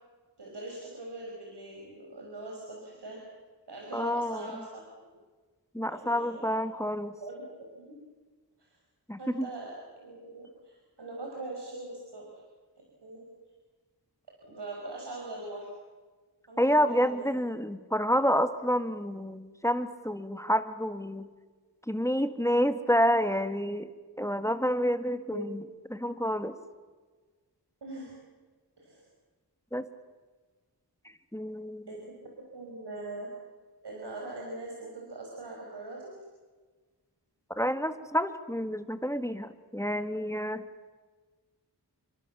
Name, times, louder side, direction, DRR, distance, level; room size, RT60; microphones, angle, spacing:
voice 1, 0.4-3.2 3.7-4.7 5.9-6.6 7.2-7.4 7.7-7.9 8.6-8.7 9.2-12.3 13.0-13.2 14.5-15.7 16.5-17.5 25.3-25.4 27.8-28.1 28.8-29.0 31.9-32.2 32.5-33.3 33.8-36.1, right 2 dB, 85° right, -1 dB, 5.8 m, -41 dB
voice 2, 3.9-4.6 5.7-7.1 9.1-9.5 16.6-21.3 21.9-23.9 24.2-25.6 25.9-26.6 29.7-29.8 31.3-31.9 37.6-40.6, equal, 5° left, 10 dB, 1.7 m, -28 dB
29.5 x 23.5 x 7.3 m, 1.4 s
wide cardioid pair, 60°, 40 cm